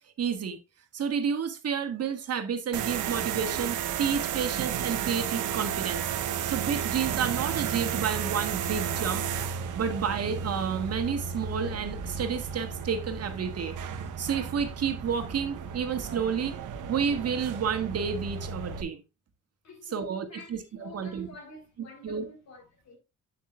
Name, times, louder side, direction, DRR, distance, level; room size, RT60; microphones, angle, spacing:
voice 1, 0.2-0.6 0.9-6.0 6.4-9.3 9.8-13.8 14.2-16.6 16.9-19.0 19.9-21.3 22.0-22.2, right 7 dB, 55° right, 1.7 m, -30 dB
sound 1, 2.7-18.8, right 8 dB, 80° right, 1.2 m, -33 dB
voice 2, 19.6-23.0, left 2 dB, 65° left, 4.1 m, -48 dB
8.4 x 7.6 x 2.5 m
cardioid pair, 90°, 30 cm